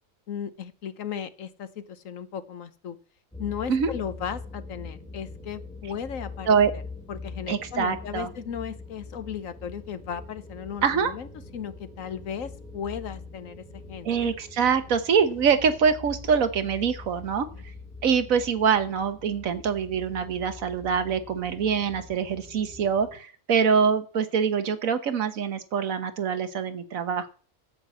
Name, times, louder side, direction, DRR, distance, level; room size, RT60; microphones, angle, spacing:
voice 1, 0.3-3.0 3.4-6.6 7.1-14.3, left 8 dB, 70° left, 12 dB, 1.3 m, -36 dB
sound 1, 3.3-23.2, left 3 dB, 5° left, 1.5 m, -43 dB
voice 2, 7.5-8.3 10.8-11.1 14.0-17.5 18.0-27.3, right 6 dB, 70° right, 10 dB, 1.5 m, -24 dB
9.2 x 7.8 x 7.8 m, 0.42 s
omnidirectional pair, 1.5 m